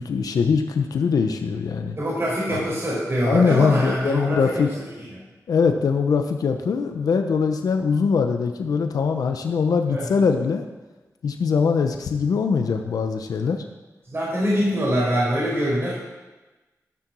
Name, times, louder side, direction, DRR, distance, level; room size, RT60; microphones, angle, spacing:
voice 1, 0.0-2.0 2.5-2.6 3.2-4.7 5.5-10.6 11.2-13.6, left 5 dB, 90° left, 5 dB, 0.8 m, -22 dB
voice 2, 2.0-4.7 5.0-5.2 9.9-10.1 14.1-15.9, equal, 45° right, -6 dB, 4.9 m, -24 dB
13.0 x 6.9 x 6.2 m, 1.1 s
cardioid pair, 65°, 6 cm